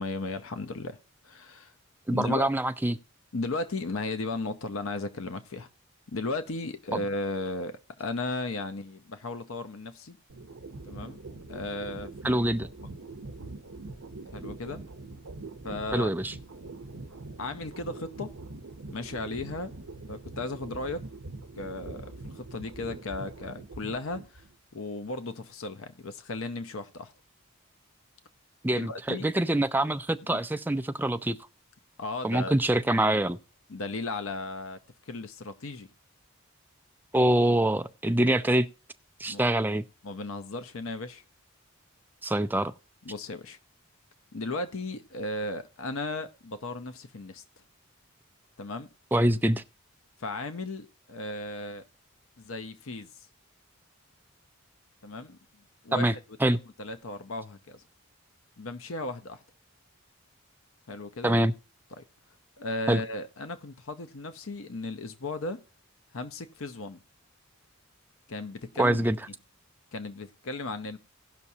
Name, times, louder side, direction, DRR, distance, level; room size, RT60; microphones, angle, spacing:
voice 1, 0.0-1.7 2.1-2.5 3.3-5.7 6.1-10.2 10.8-11.2 11.5-12.4 14.3-14.8 15.6-16.1 17.4-18.4 18.9-19.7 20.1-21.0 21.6-24.4 24.7-27.1 28.7-29.3 30.3-30.4 32.0-32.5 33.7-34.8 35.1-35.9 39.3-39.4 40.0-41.2 43.0-43.6 44.3-47.4 48.6-48.9 50.2-51.9 52.4-53.3 55.0-55.4 55.8-56.1 56.5-57.8 58.6-59.4 60.9-61.4 62.0-62.1 62.6-65.6 66.1-67.0 68.3-69.0 69.9-71.0, left 2 dB, 75° left, 0.8 m, -35 dB
voice 2, 2.1-3.0 6.9-7.0 12.2-12.7 15.9-16.3 28.6-31.4 32.2-33.4 37.1-38.7 39.2-39.8 42.2-42.7 49.1-49.6 55.9-56.1 56.4-56.6 61.2-61.5 62.9-63.0 68.8-69.2, right 1 dB, 10° right, 0.4 m, -25 dB
sound 1, 10.3-24.5, right 2 dB, 80° right, 0.8 m, -43 dB
17.5 x 6.0 x 2.8 m
head